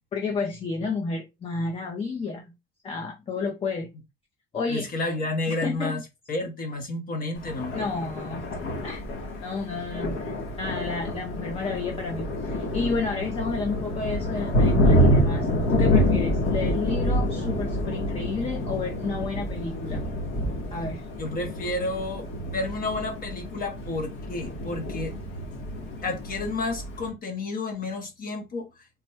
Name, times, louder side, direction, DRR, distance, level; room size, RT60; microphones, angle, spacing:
voice 1, 0.1-2.5 2.8-3.9 4.5-4.9 5.5-6.0 7.7-8.4 8.8-9.0 9.4-20.0 20.7-21.0, left 4 dB, 30° left, 0.5 m, -31 dB
voice 2, 4.7-6.0 6.3-7.8 21.2-25.1 26.0-28.7, left 2 dB, 45° left, 0.8 m, -31 dB
Thunder, 7.4-27.1, equal, 85° left, 1.3 m, -27 dB
3.4 x 2.2 x 4.3 m
cardioid pair, 150°, 21 cm